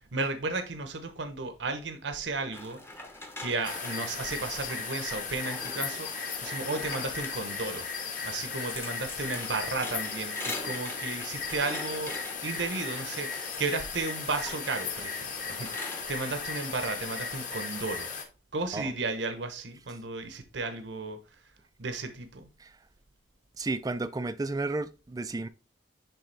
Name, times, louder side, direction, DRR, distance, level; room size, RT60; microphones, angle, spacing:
voice 1, 0.1-2.8 3.4-7.9 8.2-12.1 12.4-18.1 18.5-21.2 21.8-22.5, right 3 dB, 75° right, 0.9 m, -34 dB
sound 1, 2.5-16.0, left 2 dB, 15° left, 0.9 m, -44 dB
sound 2, 3.6-18.2, left 5 dB, 45° left, 1.5 m, -36 dB
voice 2, 23.6-25.5, right 2 dB, 20° right, 0.3 m, -32 dB
10.0 x 3.5 x 3.4 m
head